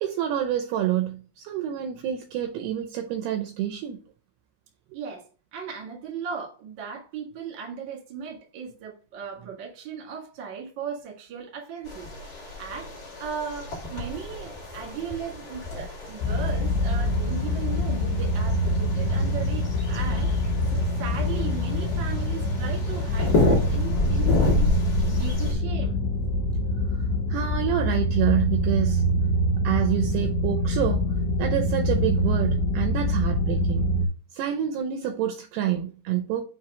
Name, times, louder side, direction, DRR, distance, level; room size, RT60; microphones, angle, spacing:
voice 1, 0.0-4.0 27.3-29.1 29.5-31.1 31.4-33.9 34.3-36.4, right 11 dB, 80° right, 2.4 m, -27 dB
voice 2, 4.9-5.2 5.5-12.1 12.4-12.9 13.2-20.3 20.7-24.7 25.1-26.0, right 6 dB, 55° right, 1.3 m, -37 dB
sound 1, 11.8-25.5, left 2 dB, 40° left, 1.3 m, -30 dB
sound 2, 16.2-34.1, equal, 85° left, 2.9 m, -25 dB
7.3 x 3.1 x 4.9 m
omnidirectional pair, 5.2 m